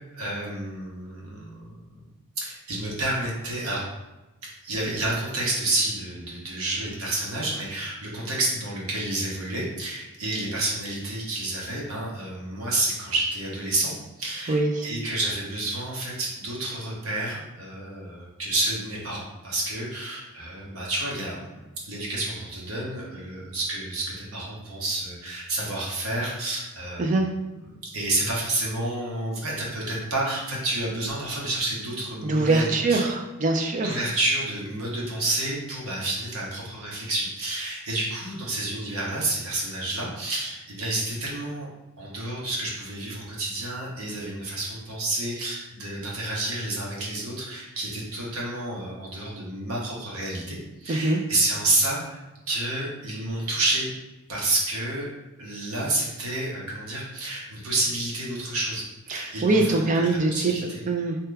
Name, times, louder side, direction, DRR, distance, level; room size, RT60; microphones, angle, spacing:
voice 1, 0.1-1.8 2.4-3.8 4.6-27.0 27.9-33.0 33.8-41.7 42.0-52.2 52.5-53.9 54.3-55.1 55.4-60.8, right 2 dB, 70° right, -4 dB, 0.9 m, -29 dB
voice 2, 14.5-14.9 27.0-27.3 32.2-34.0 50.9-51.2 59.1-60.6 60.9-61.2, right 2 dB, 35° right, 2 dB, 0.3 m, -23 dB
2.8 x 2.3 x 3.3 m, 1.1 s
head